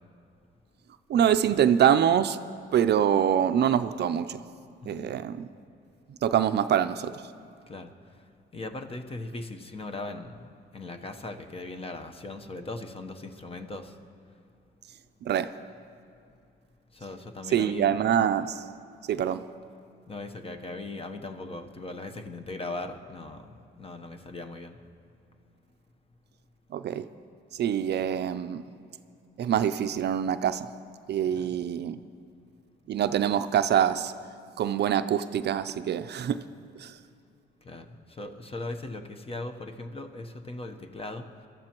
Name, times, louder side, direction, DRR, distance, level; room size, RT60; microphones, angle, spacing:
voice 1, 1.1-2.4 2.7-4.4 4.8-5.5 6.1-7.2 15.3-15.5 17.5-18.6 19.1-19.4 26.7-27.0 27.5-28.6 29.4-30.7 31.1-32.0 32.9-34.1 34.6-36.4 36.8-36.9, right 9 dB, 55° right, 11 dB, 0.5 m, -25 dB
voice 2, 4.8-5.2 7.7-7.9 8.5-14.0 16.9-18.0 20.1-23.5 23.8-24.8 31.3-31.5 36.3-36.4 37.6-41.3, left 2 dB, 30° left, 6 dB, 0.9 m, -39 dB
23.0 x 13.0 x 3.0 m, 2.5 s
cardioid pair, 90°, 20 cm